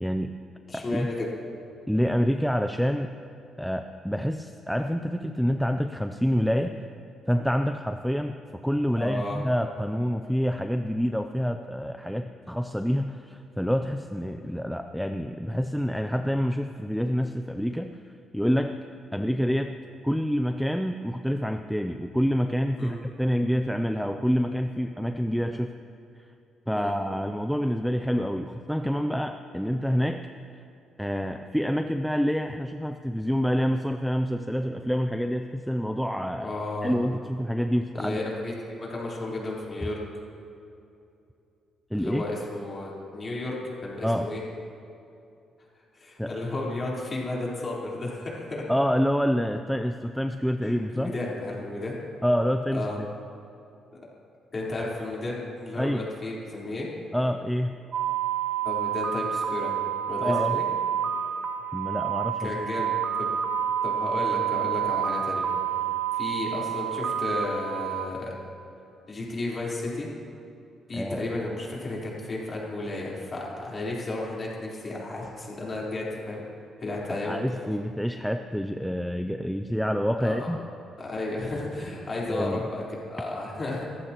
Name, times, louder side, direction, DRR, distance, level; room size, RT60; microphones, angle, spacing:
voice 1, 0.0-0.3 0.7-1.1 1.9-3.2 3.6-6.7 7.3-8.4 8.6-17.9 18.3-18.8 19.1-19.8 20.0-25.7 26.7-30.2 31.0-36.5 36.8-38.2 41.9-42.2 44.0-44.3 46.2-46.3 48.7-51.1 52.2-53.1 55.8-56.0 57.1-57.8 60.2-60.6 61.7-62.5 70.9-71.2 77.1-80.6 82.3-82.6, equal, ahead, 6 dB, 0.4 m, -27 dB
voice 2, 0.7-1.3 8.9-9.4 22.8-22.9 26.7-26.9 36.4-36.9 37.9-40.0 41.9-43.6 43.8-44.4 45.9-48.7 50.6-51.9 52.7-53.0 54.5-56.9 58.6-59.7 60.1-60.6 62.4-63.3 63.8-68.4 69.1-70.1 70.9-76.4 76.8-77.4 77.6-77.7 80.2-80.5 81.0-83.8, left 2 dB, 25° left, -5 dB, 4.0 m, -33 dB
sound 1, 57.9-68.1, right 9 dB, 45° right, 1.0 m, -28 dB
29.0 x 15.0 x 3.0 m, 2.7 s
cardioid pair, 155°, 0 cm